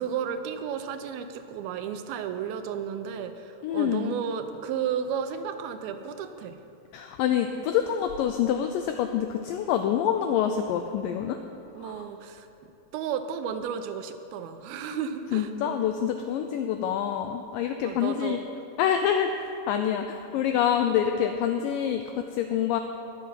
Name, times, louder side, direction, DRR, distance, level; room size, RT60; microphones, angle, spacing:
voice 1, 0.0-6.6 11.7-12.5 12.9-15.9 17.8-18.5, right 7 dB, 80° right, 8 dB, 2.5 m, -33 dB
voice 2, 3.6-4.1 6.9-11.4 11.8-12.0 14.9-15.0 15.3-18.4 18.8-19.3 19.7-22.8, left 9 dB, 85° left, 6 dB, 1.9 m, -26 dB
19.5 x 7.0 x 5.7 m, 2.8 s
omnidirectional pair, 4.5 m